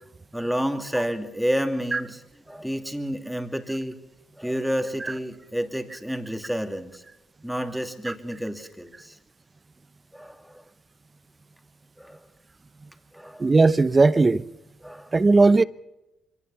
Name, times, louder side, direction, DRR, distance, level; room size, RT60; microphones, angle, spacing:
voice 1, 0.3-4.0 4.4-7.0 7.4-9.2 10.1-10.6 12.0-12.2 13.1-13.5 14.8-15.1, equal, ahead, 2.5 m, -30 dB
voice 2, 13.4-14.4 15.1-15.6, right 3 dB, 25° right, 0.7 m, -17 dB
23.5 x 18.0 x 7.1 m
cardioid pair, 90°, 0 cm